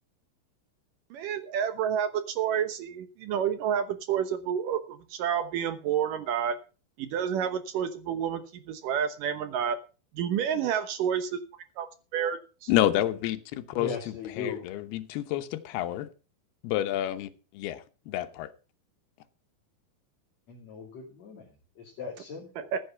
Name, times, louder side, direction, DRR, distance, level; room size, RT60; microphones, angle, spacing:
voice 1, 1.1-6.6 7.0-9.8 10.1-11.4 11.8-12.7 22.6-22.8, right 8 dB, 70° right, 2.3 m, -29 dB
voice 2, 12.7-13.9 14.4-16.1 16.6-18.5, left 13 dB, 80° left, 3.0 m, -29 dB
voice 3, 13.7-14.7 20.5-22.7, left 5 dB, 45° left, 3.8 m, -38 dB
14.5 x 9.0 x 5.8 m
omnidirectional pair, 4.6 m